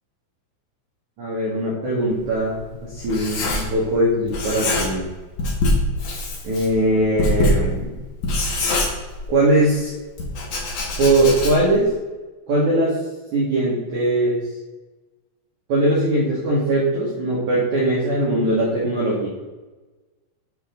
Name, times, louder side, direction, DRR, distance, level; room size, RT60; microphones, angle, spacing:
voice 1, 1.2-5.1 6.4-7.9 9.3-9.9 11.0-11.9 12.5-13.0 13.3-14.4 15.7-19.3, right 1 dB, 50° right, -6 dB, 2.8 m, -20 dB
Writing, 2.1-4.0 4.3-5.1 5.4-9.5 10.2-11.8, left 1 dB, 55° left, 2.4 m, -24 dB
9.5 x 7.1 x 4.0 m, 1.2 s
omnidirectional pair, 6.0 m